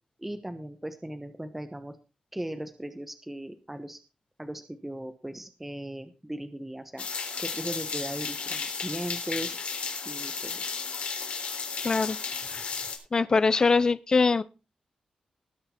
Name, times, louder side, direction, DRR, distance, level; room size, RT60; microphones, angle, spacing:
voice 1, 0.2-2.0 2.3-4.0 4.4-7.1 7.4-9.6 10.0-10.7, right 1 dB, 10° right, 1.1 m, -38 dB
sound 1, 7.0-13.0, left 5 dB, 70° left, 3.4 m, -34 dB
voice 2, 11.8-12.2 12.5-12.7 13.1-14.4, left 4 dB, 35° left, 0.6 m, -23 dB
19.5 x 6.6 x 4.4 m
wide cardioid pair, 160°, 2 cm